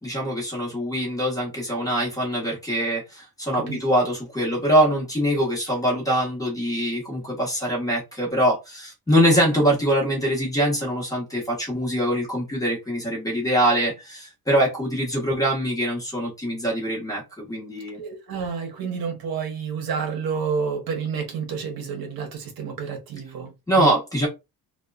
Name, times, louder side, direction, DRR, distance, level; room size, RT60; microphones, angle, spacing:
voice 1, 0.0-18.0 23.7-24.3, equal, 10° left, 1.0 m, -23 dB
voice 2, 18.0-23.9, right 6 dB, 65° right, 0.8 m, -29 dB
2.8 x 2.2 x 2.3 m
cardioid pair, 175°, 38 cm